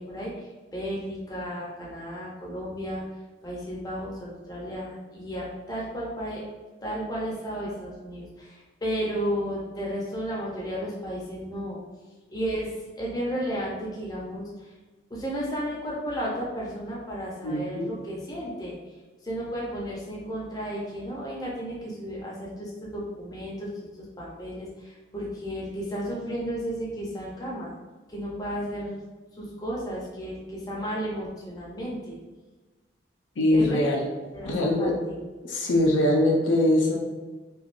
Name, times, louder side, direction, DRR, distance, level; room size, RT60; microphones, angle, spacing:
voice 1, 0.0-3.0 3.4-6.4 6.8-11.8 12.3-12.7 13.0-14.7 15.1-18.8 19.2-23.7 24.2-27.7 28.1-29.0 29.4-32.1 33.5-33.8 34.3-35.2, equal, 20° left, -5 dB, 0.6 m, -33 dB
voice 2, 17.4-17.9 33.4-34.0 34.4-35.0 35.4-37.0, left 1 dB, 85° left, -1 dB, 0.5 m, -22 dB
3.2 x 2.3 x 2.5 m, 1.2 s
head